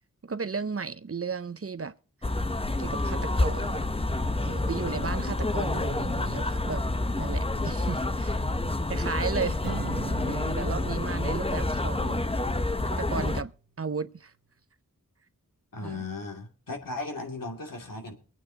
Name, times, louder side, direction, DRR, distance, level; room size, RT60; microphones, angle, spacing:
voice 1, 0.2-1.9 2.2-2.3 2.8-3.8 4.4-6.9 7.2-8.4 8.9-9.6 10.3-12.2 12.9-14.3 15.8-16.1, right 5 dB, 45° right, 0.7 m, -34 dB
sound 1, 2.2-13.4, left 2 dB, 15° left, 0.8 m, -28 dB
Acoustic guitar / Strum, 9.6-13.0, right 6 dB, 85° right, 1.2 m, -41 dB
voice 2, 15.7-18.1, left 3 dB, 75° left, 2.7 m, -36 dB
23.5 x 9.0 x 2.9 m
wide cardioid pair, 65°, 33 cm